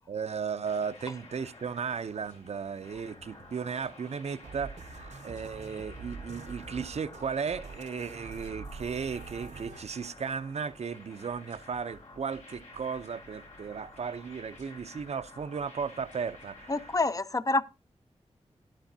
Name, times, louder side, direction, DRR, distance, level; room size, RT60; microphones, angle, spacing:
voice 1, 0.1-17.0, right 6 dB, 65° right, 0.5 m, -35 dB
sound 1, 0.6-17.0, left 2 dB, 85° left, 3.8 m, -51 dB
sound 2, 4.4-9.8, right 4 dB, 85° right, 0.9 m, -45 dB
voice 2, 16.7-17.6, left 3 dB, 30° left, 0.4 m, -27 dB
11.5 x 11.5 x 2.7 m
wide cardioid pair, 110°, 12 cm